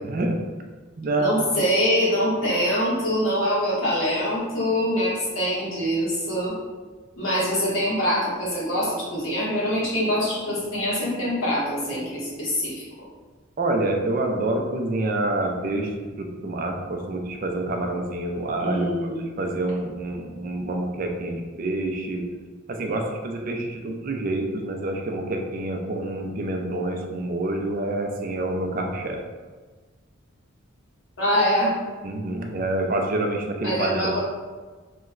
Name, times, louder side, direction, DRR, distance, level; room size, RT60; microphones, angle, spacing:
voice 1, 0.0-0.4 1.0-1.4 13.6-18.9 19.2-22.2 22.7-29.2 32.0-34.2, right 2 dB, 40° right, 2 dB, 0.3 m, -27 dB
voice 2, 1.2-6.5 7.2-12.8 18.6-19.2 31.2-31.7 33.6-34.2, equal, 75° left, -7 dB, 1.2 m, -24 dB
3.0 x 2.1 x 3.6 m, 1.4 s
head